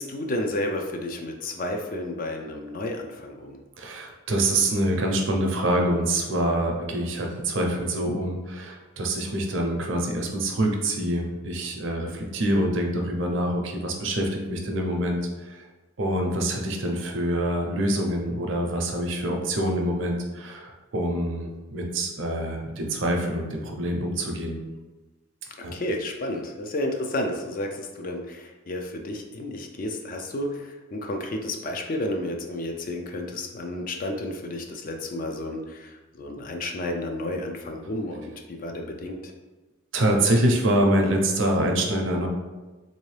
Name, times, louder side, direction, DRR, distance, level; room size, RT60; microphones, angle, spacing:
voice 1, 0.0-3.6 25.7-39.3, left 1 dB, 40° left, 3 dB, 0.4 m, -31 dB
voice 2, 3.8-15.6 16.0-24.6 25.6-25.7 39.9-42.3, right 1 dB, 65° right, 1 dB, 0.6 m, -25 dB
3.6 x 2.7 x 3.2 m, 1.2 s
head